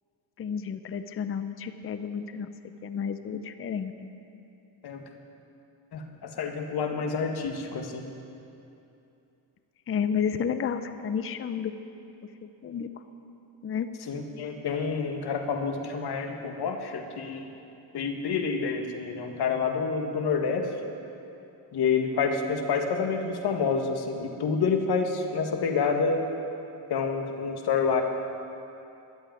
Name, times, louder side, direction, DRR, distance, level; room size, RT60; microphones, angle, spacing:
voice 1, 0.4-2.5 2.8-4.1 9.9-11.7 12.4-12.9 13.6-13.9, left 7 dB, 30° left, 10 dB, 0.6 m, -31 dB
voice 2, 5.9-8.1 14.1-17.5 17.9-20.7 21.7-26.2 26.9-28.0, left 5 dB, 50° left, 4 dB, 1.6 m, -28 dB
12.0 x 8.2 x 9.2 m, 2.8 s
cardioid pair, 100°, 49 cm